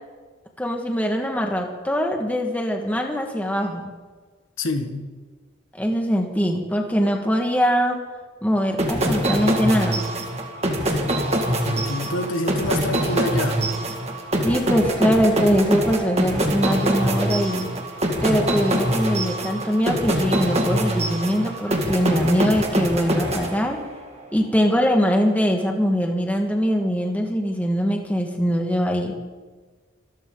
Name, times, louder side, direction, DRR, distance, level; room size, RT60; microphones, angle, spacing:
voice 1, 0.6-3.9 5.7-8.0 8.4-10.1 14.4-17.7 18.2-23.8 24.3-29.2, equal, 10° left, 1.7 m, -22 dB
voice 2, 4.6-5.0 11.6-13.7, left 1 dB, 80° left, 1.7 m, -27 dB
sound 1, 8.8-24.1, right 1 dB, 30° right, 1.9 m, -24 dB
25.5 x 13.0 x 3.9 m
head